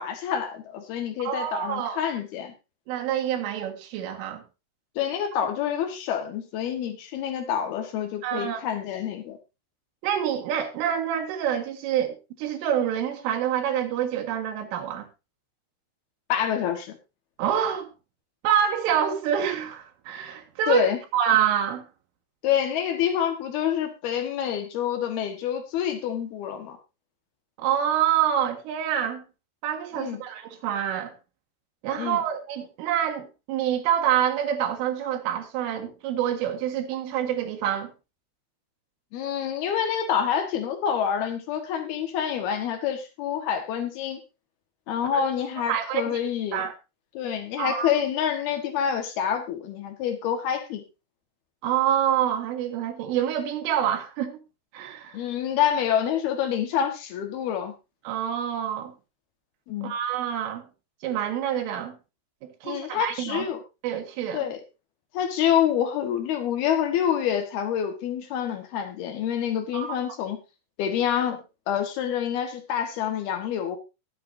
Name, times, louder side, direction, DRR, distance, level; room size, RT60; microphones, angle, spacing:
voice 1, 0.0-2.5 5.0-9.4 16.3-17.0 20.7-21.0 22.4-26.8 29.9-30.2 32.0-32.2 39.1-44.2 44.9-46.7 47.1-50.8 55.1-57.7 59.7-59.9 62.6-63.6 64.3-64.6 65.1-70.4 70.8-73.8, left 9 dB, 65° left, 3.0 m, -27 dB
voice 2, 1.3-2.0 2.9-4.4 8.2-8.6 10.0-15.1 17.4-17.9 18.4-21.9 27.6-29.2 29.6-31.1 31.8-37.9 45.1-45.2 45.7-46.2 46.5-46.7 47.6-48.0 51.6-54.4 54.7-55.2 58.1-58.9 59.8-60.7 61.0-62.0 62.4-63.5 63.8-64.4 69.7-70.0, right 9 dB, 85° right, 4.2 m, -27 dB
20.5 x 7.8 x 2.7 m
omnidirectional pair, 5.6 m